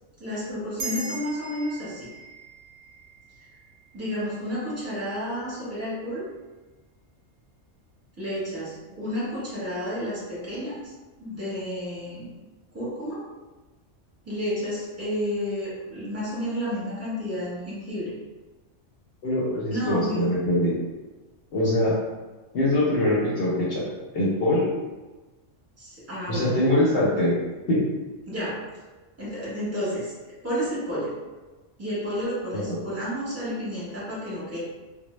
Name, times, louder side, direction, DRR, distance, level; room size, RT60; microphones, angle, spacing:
voice 1, 0.2-2.1 3.9-6.2 8.2-10.9 11.2-12.3 12.7-13.2 14.2-18.1 19.7-20.2 25.8-26.5 28.3-28.6 29.2-30.1 30.4-31.1 31.8-34.6, equal, 15° right, -9 dB, 0.7 m, -31 dB
sound 1, 0.8-5.5, right 3 dB, 65° right, 0.8 m, -40 dB
voice 2, 19.2-20.7 21.5-22.0 22.5-23.9 24.1-24.7 26.3-27.3 27.7-27.8 32.5-32.8, left 1 dB, 60° left, -7 dB, 0.7 m, -23 dB
2.0 x 2.0 x 3.0 m, 1.2 s
omnidirectional pair, 1.3 m